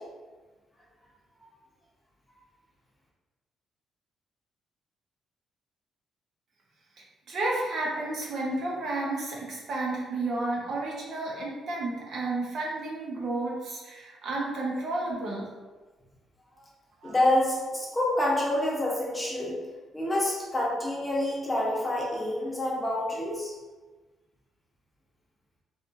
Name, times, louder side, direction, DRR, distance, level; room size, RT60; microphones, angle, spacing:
voice 1, 7.0-15.5 17.0-17.1, right 2 dB, 65° right, -3 dB, 0.8 m, -32 dB
voice 2, 17.0-19.5 19.9-23.5, left 1 dB, 20° left, -4 dB, 0.8 m, -27 dB
2.8 x 2.4 x 2.5 m, 1.3 s
cardioid pair, 90°, 0 cm